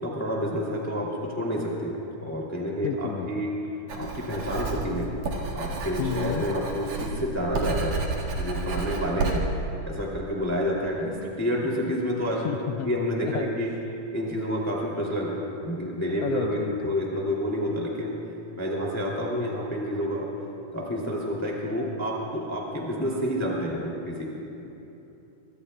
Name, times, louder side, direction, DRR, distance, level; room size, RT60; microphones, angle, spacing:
voice 1, 0.0-3.5 3.9-5.1 5.5-8.1 8.4-9.5 9.9-12.5 12.8-13.7 14.1-18.2 18.6-20.3 20.7-24.4, equal, 5° left, -3 dB, 1.8 m, -29 dB
voice 2, 2.8-3.5 6.0-6.5 12.4-12.9 13.2-13.5 16.1-16.9, left 11 dB, 80° left, 6 dB, 1.4 m, -31 dB
Writing, 3.9-9.4, right 3 dB, 80° right, 3.1 m, -31 dB
24.5 x 24.0 x 2.2 m, 3.0 s
omnidirectional pair, 3.3 m